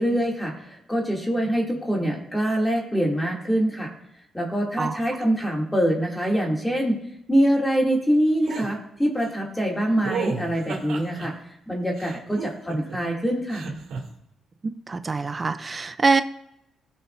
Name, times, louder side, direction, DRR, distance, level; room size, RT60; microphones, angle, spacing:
voice 1, 0.0-3.9 4.3-7.0 7.3-11.4 11.7-13.7, equal, 10° left, -1 dB, 2.8 m, -24 dB
sound 1, 8.4-8.7 10.0-11.3 12.0-13.0 13.5-14.0, right 5 dB, 80° right, 2.7 m, -32 dB
voice 2, 14.9-16.2, right 4 dB, 30° right, 10 dB, 0.6 m, -24 dB
18.5 x 6.5 x 2.7 m, 0.80 s
cardioid pair, 90°, 0 cm